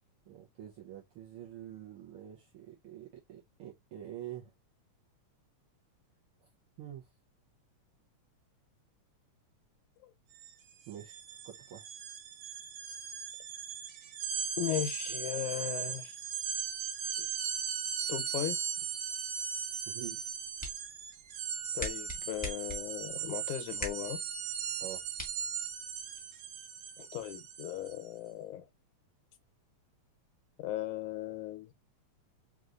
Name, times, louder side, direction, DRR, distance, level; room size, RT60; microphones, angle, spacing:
voice 1, 0.3-4.5 6.4-6.5 6.8-7.1 10.9-11.9 19.9-20.2 24.8-25.0, right 11 dB, 70° right, 1.3 m, -46 dB
sound 1, 10.3-10.5 10.8-28.0, right 7 dB, 90° right, 1.1 m, -38 dB
voice 2, 14.6-16.2 17.2-17.3 18.1-18.6 21.7-24.2 27.0-28.7 30.6-31.7, left 13 dB, 85° left, 2.1 m, -37 dB
sound 2, 20.2-26.2, left 1 dB, 5° left, 0.8 m, -45 dB
4.9 x 3.0 x 2.5 m
omnidirectional pair, 3.4 m